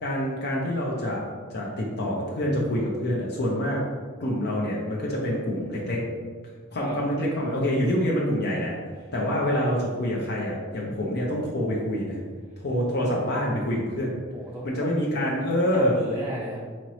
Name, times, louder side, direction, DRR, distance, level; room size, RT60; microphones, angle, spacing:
voice 1, 0.0-1.2 1.5-3.8 4.2-6.0 6.7-8.7 9.1-12.2 12.6-14.2 14.6-16.0, equal, 50° left, -3 dB, 0.6 m, -26 dB
voice 2, 14.3-14.9 15.6-16.6, right 1 dB, 10° right, -6 dB, 0.5 m, -34 dB
5.1 x 2.9 x 3.0 m, 1.6 s
head